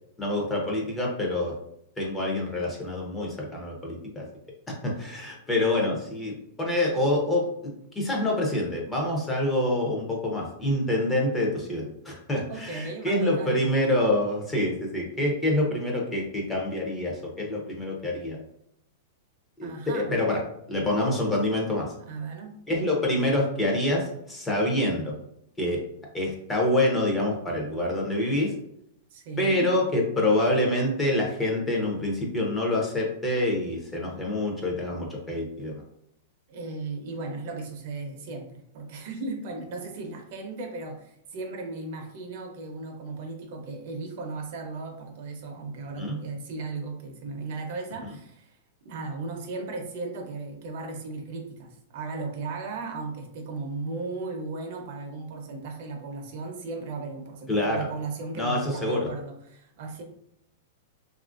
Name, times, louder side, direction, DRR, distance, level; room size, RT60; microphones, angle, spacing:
voice 1, 0.2-1.5 2.0-4.3 4.7-7.5 7.9-18.4 19.6-20.4 20.7-21.9 22.7-25.2 25.6-25.8 26.1-28.5 29.4-35.8 46.0-46.2 57.5-57.9 58.3-59.1, left 1 dB, 10° left, -2 dB, 0.6 m, -26 dB
voice 2, 12.5-13.7 19.6-20.2 22.0-22.6 29.1-29.7 36.5-48.6 48.8-60.0, right 3 dB, 50° right, 3 dB, 0.6 m, -36 dB
2.9 x 2.4 x 2.4 m, 0.75 s
supercardioid pair, 160°, 0 cm